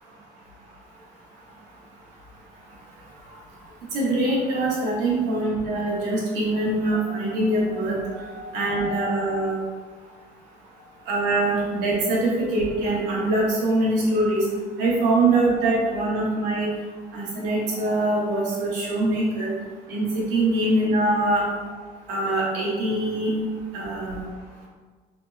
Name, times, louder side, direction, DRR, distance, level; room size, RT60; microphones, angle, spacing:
voice 1, 3.9-9.6 11.1-14.4 14.8-16.7 17.1-19.5 19.9-20.0 20.3-21.4 22.1-23.3 23.7-24.2, right 2 dB, 90° right, -4 dB, 1.1 m, -23 dB
3.5 x 2.9 x 2.5 m, 1.4 s
cardioid pair, 110°, 17 cm